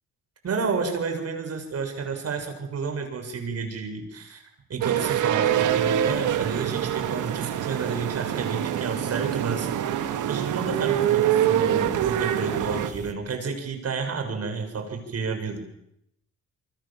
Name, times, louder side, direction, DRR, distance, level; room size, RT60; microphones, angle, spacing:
voice 1, 0.4-4.4 4.7-15.6, right 5 dB, 55° right, 5 dB, 7.3 m, -30 dB
sound 1, 4.8-12.9, right 11 dB, 80° right, 2.1 m, -25 dB
sound 2, 5.5-13.1, right 3 dB, 25° right, 2.7 m, -46 dB
28.5 x 23.5 x 7.7 m, 0.78 s
cardioid pair, 90°, 30 cm